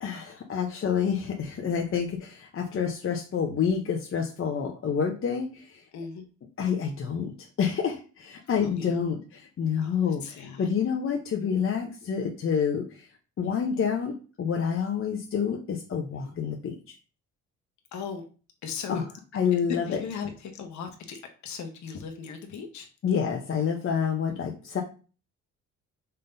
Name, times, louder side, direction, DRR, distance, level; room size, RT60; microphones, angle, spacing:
voice 1, 0.0-5.8 6.6-7.3 7.6-13.1 13.4-17.0 18.9-19.0 19.3-20.0 23.0-24.8, left 7 dB, 45° left, 2 dB, 0.7 m, -28 dB
voice 2, 5.9-6.3 8.6-9.0 9.8-10.8 16.2-16.4 17.9-18.2 18.6-19.0 19.5-22.9, left 6 dB, 70° left, 4 dB, 1.1 m, -38 dB
5.4 x 3.7 x 2.6 m, 0.37 s
cardioid pair, 90°, 30 cm